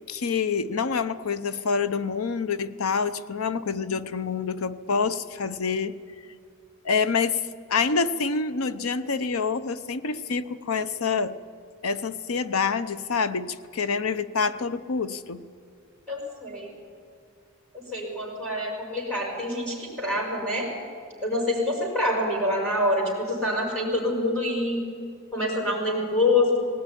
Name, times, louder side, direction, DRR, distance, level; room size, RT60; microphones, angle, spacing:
voice 1, 0.1-6.0 6.8-11.4 11.8-15.4, left 5 dB, 90° left, 0.8 m, -27 dB
voice 2, 16.1-16.7 17.9-20.7 21.2-24.9 25.3-26.6, left 1 dB, 5° left, 5.8 m, -26 dB
18.0 x 18.0 x 9.9 m
head